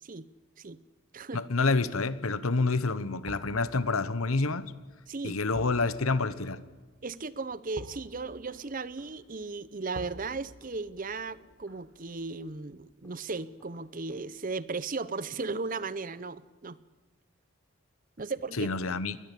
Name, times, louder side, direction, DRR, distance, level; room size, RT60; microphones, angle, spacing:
voice 1, 1.3-4.7 5.2-6.6 18.5-19.2, left 3 dB, 85° left, 1.1 m, -28 dB
Knock, 3.0-3.8 4.1-4.2 5.4-6.6 7.9-9.2 10.6-11.9 13.0-14.2 15.1-15.9 16.1-16.3, equal, 10° left, 6.0 m, -60 dB
sound 1, 3.3-14.3 14.6-14.7, right 2 dB, 55° right, 1.4 m, -50 dB
voice 2, 5.1-5.4 7.0-16.8 18.2-18.7, right 3 dB, 40° right, 0.7 m, -36 dB
21.0 x 20.0 x 8.4 m
head